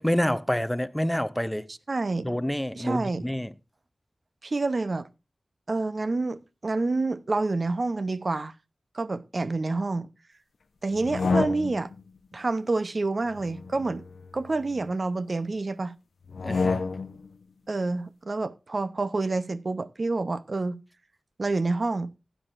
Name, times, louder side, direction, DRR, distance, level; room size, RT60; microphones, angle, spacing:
voice 1, 0.0-1.7 2.2-3.5 16.4-16.8, equal, 5° left, 0.6 m, -27 dB
voice 2, 1.9-2.3 2.7-3.3 4.4-5.1 5.7-8.5 8.9-10.1 10.8-11.9 12.3-14.0 14.3-15.9 17.7-20.8 21.4-22.1, right 3 dB, 55° right, 0.6 m, -28 dB
sound 1, 10.9-12.0 13.3-14.9 16.3-17.3, left 4 dB, 80° left, 0.7 m, -30 dB
16.5 x 9.1 x 2.5 m
cardioid pair, 50°, 0 cm